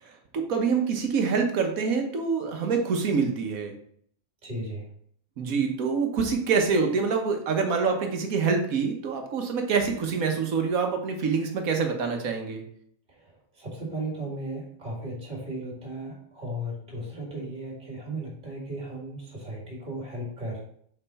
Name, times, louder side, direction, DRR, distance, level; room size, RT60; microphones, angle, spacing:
voice 1, 0.0-3.7 5.4-12.6, right 5 dB, 80° right, 4 dB, 1.5 m, -26 dB
voice 2, 4.4-4.9 13.1-20.6, right 1 dB, 35° right, -3 dB, 2.2 m, -36 dB
5.6 x 5.1 x 4.1 m, 0.64 s
omnidirectional pair, 1.4 m